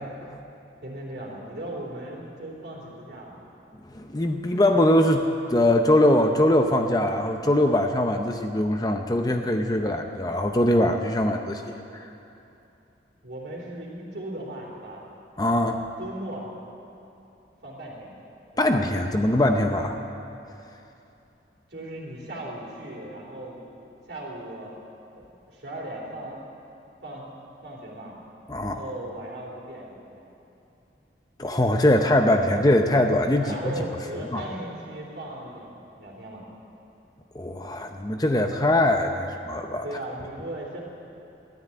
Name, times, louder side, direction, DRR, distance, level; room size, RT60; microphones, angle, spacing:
voice 1, 0.8-3.4 13.2-15.0 16.0-16.5 17.6-18.2 18.5-19.0 21.7-23.7 24.1-24.7 25.1-26.4 27.0-27.3 27.6-28.2 28.6-30.2 33.4-36.4 39.8-40.8, right 1 dB, 60° right, -2 dB, 3.4 m, -37 dB
voice 2, 3.9-5.2 5.5-11.6 11.9-12.0 15.4-15.8 18.6-19.9 28.5-28.8 31.4-33.7 34.3-34.4 37.3-39.8, left 1 dB, 20° left, 5 dB, 0.7 m, -22 dB
13.0 x 10.0 x 9.9 m, 2.8 s
head